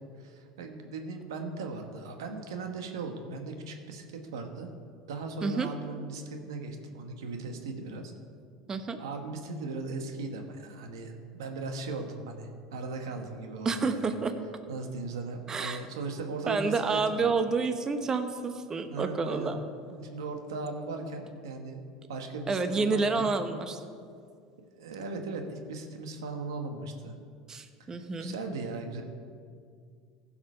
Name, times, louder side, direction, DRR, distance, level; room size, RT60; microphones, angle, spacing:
voice 1, 0.2-4.7 5.1-8.1 9.0-14.1 14.7-17.3 18.9-19.6 19.9-21.8 22.1-23.3 24.8-27.1 27.9-29.0, right 3 dB, 90° right, 5 dB, 1.3 m, -38 dB
voice 2, 13.6-14.3 15.5-15.8 16.5-19.6 22.5-23.8 27.5-28.3, right 4 dB, 25° right, 8 dB, 0.9 m, -29 dB
15.5 x 5.9 x 5.5 m, 2.2 s
supercardioid pair, 95°, 2 cm